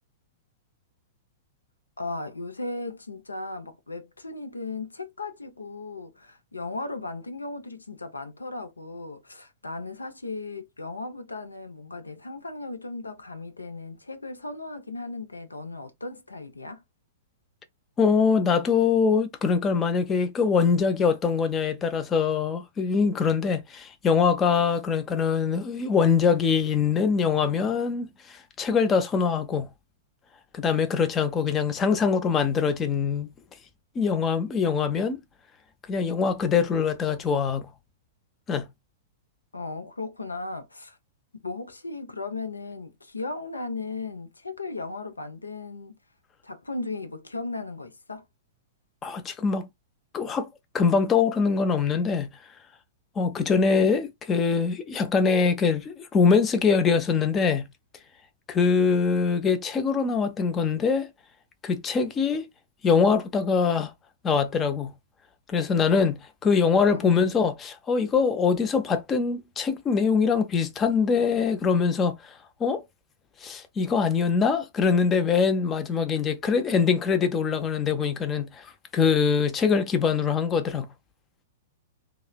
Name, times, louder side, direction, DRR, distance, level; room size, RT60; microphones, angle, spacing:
voice 1, 2.0-16.8 39.5-41.0 41.4-45.9 46.4-48.2 66.9-67.3, left 3 dB, 85° left, 0.5 m, -36 dB
voice 2, 18.0-29.7 30.5-33.3 34.0-35.2 35.9-37.7 38.5-38.7 49.0-49.7 50.1-50.5 50.7-52.3 53.2-57.7 58.5-61.1 61.6-62.5 62.8-63.9 64.2-64.9 65.5-72.8 73.4-78.7 78.9-80.9, left 5 dB, 25° left, 0.5 m, -23 dB
3.1 x 2.0 x 2.2 m
figure-of-eight pair, 105°, 0 cm